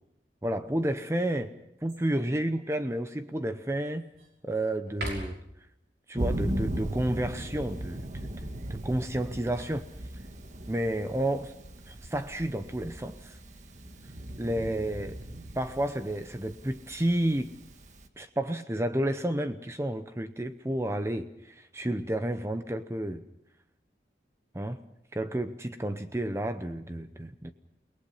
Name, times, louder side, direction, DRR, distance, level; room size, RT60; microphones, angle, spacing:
voice 1, 0.4-1.5 1.8-4.1 4.5-5.4 6.1-8.1 8.7-9.9 10.7-11.5 11.9-13.4 14.4-15.2 15.5-17.5 18.2-23.2 24.5-24.8 25.1-27.5, right 1 dB, 15° right, 9 dB, 0.7 m, -31 dB
sound 1, 1.9-2.3 2.9-3.0 3.5-4.4 4.9-5.6 9.1-10.5 11.9-12.4, right 1 dB, 60° right, 5.8 m, -42 dB
Thunder, 6.2-18.1, right 1 dB, 40° right, 1.6 m, -38 dB
30.0 x 19.5 x 5.6 m, 0.77 s
head